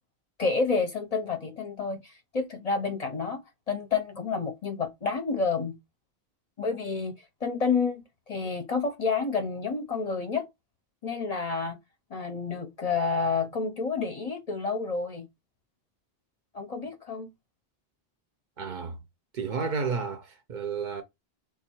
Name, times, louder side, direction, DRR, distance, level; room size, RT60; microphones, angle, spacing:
voice 1, 0.4-3.4 3.7-5.8 6.6-7.1 7.4-10.5 11.0-11.8 12.1-15.3 16.5-17.3, left 4 dB, 45° left, 0.6 m, -29 dB
voice 2, 18.6-19.0 19.3-21.0, right 5 dB, 55° right, 0.7 m, -31 dB
3.4 x 2.3 x 4.3 m
omnidirectional pair, 1.0 m